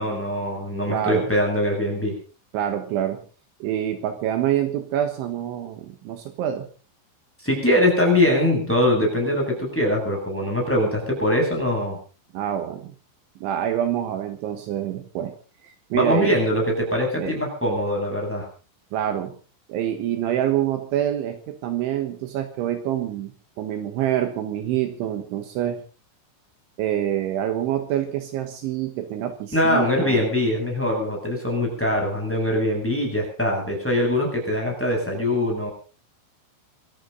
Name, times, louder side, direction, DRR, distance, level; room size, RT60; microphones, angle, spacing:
voice 1, 0.0-2.1 7.4-12.0 15.9-18.5 29.5-35.7, left 1 dB, ahead, 0 dB, 7.5 m, -22 dB
voice 2, 0.9-1.3 2.5-3.3 3.6-6.7 12.3-12.9 13.4-15.4 15.6-16.4 17.2-17.4 18.9-19.4 19.7-25.8 26.8-30.2, right 11 dB, 75° right, 7 dB, 3.6 m, -26 dB
26.0 x 13.5 x 4.0 m, 0.37 s
omnidirectional pair, 5.8 m